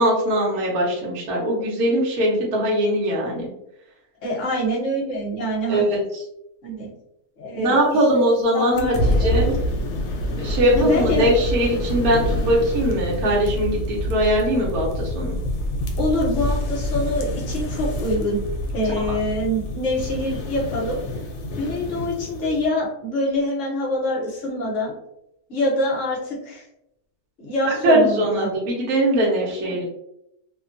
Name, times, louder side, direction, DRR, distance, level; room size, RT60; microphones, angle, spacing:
voice 1, 0.0-3.5 5.7-6.0 7.6-8.9 9.2-9.6 10.4-15.4 27.7-29.8, right 1 dB, 65° right, -4 dB, 1.0 m, -21 dB
voice 2, 4.2-5.8 6.6-6.9 7.4-8.2 8.5-9.3 10.7-11.3 16.0-18.4 18.7-21.0 21.6-24.9 25.5-26.6 27.4-28.5 29.6-29.8, left 1 dB, 55° left, -4 dB, 1.0 m, -25 dB
sound 1, 8.8-22.7, left 1 dB, 75° left, 1.1 m, -26 dB
2.8 x 2.2 x 2.5 m, 0.81 s
omnidirectional pair, 1.8 m